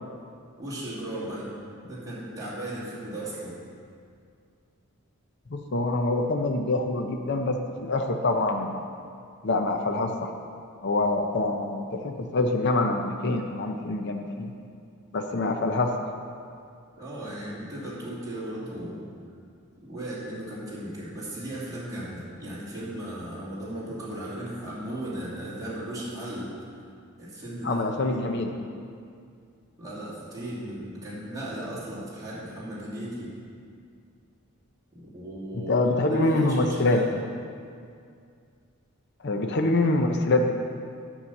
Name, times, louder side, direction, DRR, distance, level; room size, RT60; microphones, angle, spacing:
voice 1, 0.6-1.5 1.8-3.6 17.0-19.1 19.8-26.5 27.2-28.2 29.8-33.3 34.9-37.2, right 1 dB, 15° right, -9 dB, 2.6 m, -36 dB
voice 2, 5.5-8.8 9.4-10.3 10.8-14.5 15.1-16.1 27.6-28.5 35.7-37.0 39.2-40.5, left 2 dB, 50° left, 4 dB, 0.6 m, -25 dB
9.6 x 5.7 x 7.1 m, 2.3 s
head